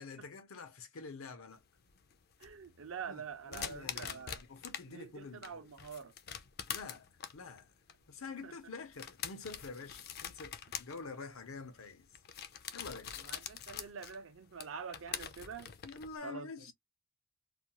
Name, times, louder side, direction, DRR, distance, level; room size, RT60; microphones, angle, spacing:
voice 1, 0.0-1.6 3.1-5.7 6.7-7.7 8.1-12.1 12.7-13.2 15.8-16.7, left 4 dB, 85° left, 0.7 m, -47 dB
sound 1, 1.5-4.9 5.2-16.2, left 9 dB, 50° left, 0.4 m, -45 dB
voice 2, 2.4-4.4 4.9-6.1 8.4-8.5 13.2-15.7 16.2-16.5, right 6 dB, 70° right, 0.6 m, -46 dB
2.4 x 2.3 x 2.8 m
head